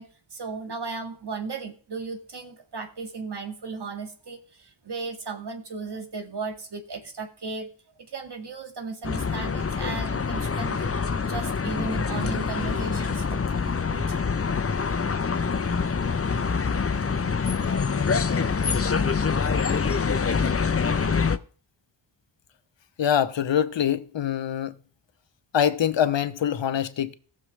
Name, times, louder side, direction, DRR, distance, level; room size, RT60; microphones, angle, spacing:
voice 1, 0.0-7.7 8.1-11.0 11.3-14.2, right 4 dB, 55° right, 2.1 m, -36 dB
sound 1, 9.0-21.4, left 5 dB, 30° left, 0.7 m, -25 dB
voice 2, 23.0-24.8 25.5-27.1, left 9 dB, 70° left, 0.9 m, -24 dB
17.5 x 6.7 x 3.4 m
cardioid pair, 60°, 47 cm